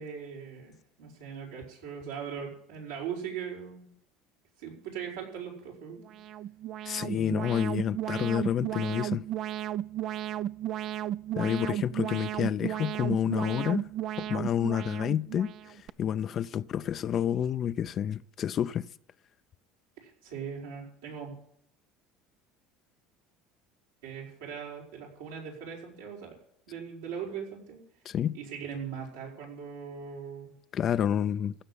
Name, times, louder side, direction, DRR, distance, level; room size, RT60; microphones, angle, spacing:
voice 1, 0.0-3.9 4.6-6.1 7.1-7.4 20.0-21.3 24.0-26.3 26.7-27.8 28.3-30.5, right 7 dB, 85° right, 5.6 m, -40 dB
Alarm, 6.0-15.9, right 12 dB, 55° right, 0.5 m, -34 dB
voice 2, 6.8-9.2 11.4-13.9 14.2-18.9 28.1-28.4 30.7-31.5, left 9 dB, 45° left, 0.5 m, -29 dB
15.5 x 6.8 x 9.8 m
hypercardioid pair, 80°, 0 cm